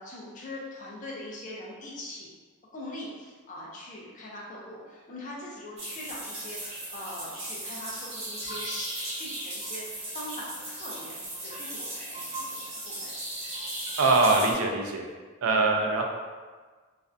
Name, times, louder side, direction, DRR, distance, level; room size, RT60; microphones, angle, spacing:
voice 1, 0.0-2.3 2.7-11.2 11.4-13.2 15.5-15.8, left 1 dB, 35° left, -4 dB, 0.5 m, -41 dB
sound 1, 5.8-14.5, right 1 dB, 30° right, 0.6 m, -37 dB
voice 2, 14.0-15.0 15.4-16.1, right 3 dB, 85° right, 2 dB, 0.4 m, -23 dB
2.4 x 2.1 x 2.5 m, 1.4 s
head